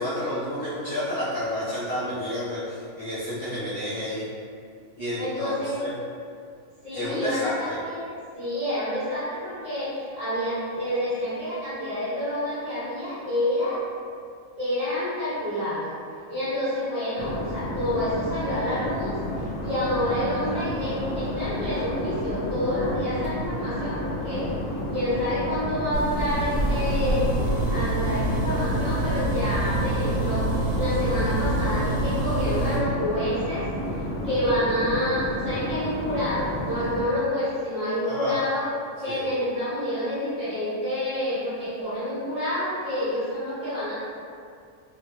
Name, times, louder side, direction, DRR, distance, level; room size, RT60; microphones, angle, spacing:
voice 1, 0.0-4.2 5.0-5.9 6.9-7.8 38.0-38.4 39.0-39.2, left 1 dB, 55° left, -12 dB, 0.6 m, -30 dB
voice 2, 5.2-5.9 6.8-13.8 14.6-15.9 16.3-19.2 19.6-24.5 24.9-33.7 34.2-38.7 39.0-43.9, left 1 dB, 35° right, -15 dB, 1.1 m, -28 dB
sound 1, 17.2-37.0, left 1 dB, 90° left, 1.1 m, -31 dB
sound 2, 25.9-32.8, right 2 dB, 55° right, 1.0 m, -27 dB
2.7 x 2.0 x 2.2 m, 2.3 s
omnidirectional pair, 1.5 m